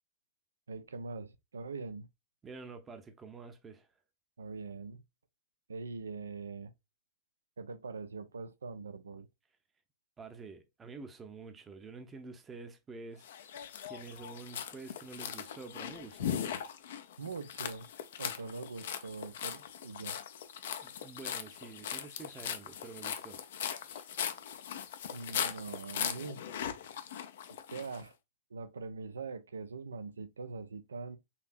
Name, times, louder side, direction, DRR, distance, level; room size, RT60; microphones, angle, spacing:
voice 1, 0.7-2.1 4.4-5.0 5.7-6.7 7.6-9.3 17.2-17.9 18.2-20.2 25.1-26.4 27.7-28.1 28.5-31.2, right 4 dB, 75° right, 0.4 m, -42 dB
voice 2, 2.4-3.9 10.2-13.3 13.9-16.7 20.8-23.4 23.8-24.0, right 4 dB, 20° right, 0.7 m, -48 dB
sound 1, 13.2-28.0, left 9 dB, 60° left, 0.5 m, -39 dB
4.1 x 2.8 x 2.4 m
figure-of-eight pair, 100°, 0 cm